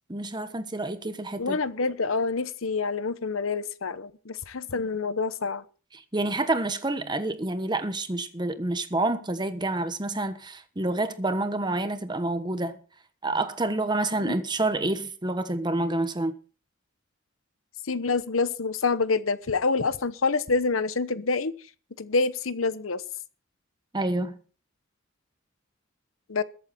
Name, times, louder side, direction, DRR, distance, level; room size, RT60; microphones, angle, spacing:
voice 1, 0.1-1.6 5.9-12.8 13.2-16.3 23.9-24.4, right 2 dB, 20° right, 1.2 m, -28 dB
voice 2, 1.4-5.6 14.2-14.3 17.9-21.5 22.0-23.0 26.3-26.4, left 4 dB, 90° left, 0.9 m, -27 dB
21.5 x 8.1 x 4.2 m
head